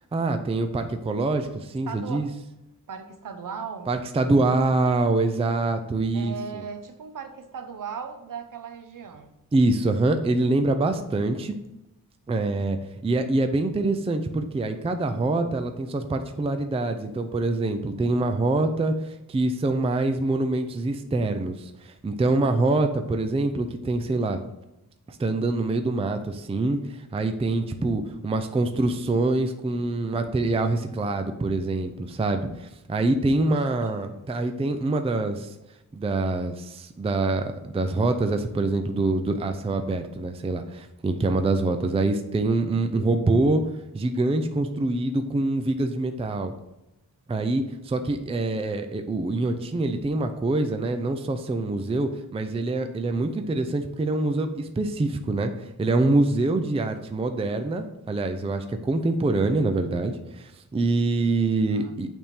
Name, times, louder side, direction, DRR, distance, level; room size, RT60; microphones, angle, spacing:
voice 1, 0.1-2.3 3.9-6.3 9.5-11.6 12.3-12.8 13.0-24.4 25.1-35.5 35.9-43.6 43.9-46.5 47.3-62.1, right 2 dB, 15° right, 7 dB, 0.4 m, -25 dB
voice 2, 1.8-2.3 2.9-3.9 6.1-9.4 33.5-34.3 61.7-62.0, right 6 dB, 65° right, 7 dB, 0.9 m, -38 dB
8.5 x 3.6 x 4.3 m, 0.92 s
wide cardioid pair, 155°, 35 cm